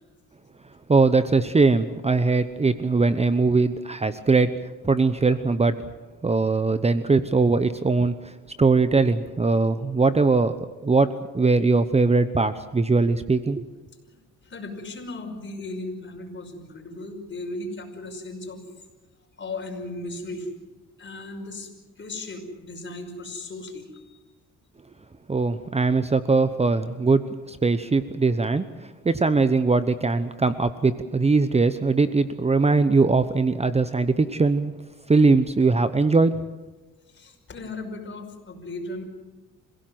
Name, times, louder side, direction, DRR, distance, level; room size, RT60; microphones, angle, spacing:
voice 1, 0.9-4.5 4.8-5.8 6.2-8.1 8.6-10.5 10.8-11.1 11.3-13.6 25.3-28.6 29.0-34.7 35.1-36.3, right 3 dB, 20° right, 12 dB, 0.9 m, -21 dB
voice 2, 14.4-18.6 19.4-20.5 21.0-21.7 22.0-24.2 37.1-39.0, left 2 dB, 40° left, 4 dB, 5.5 m, -36 dB
27.0 x 16.5 x 7.8 m, 1.2 s
cardioid pair, 90°, 30 cm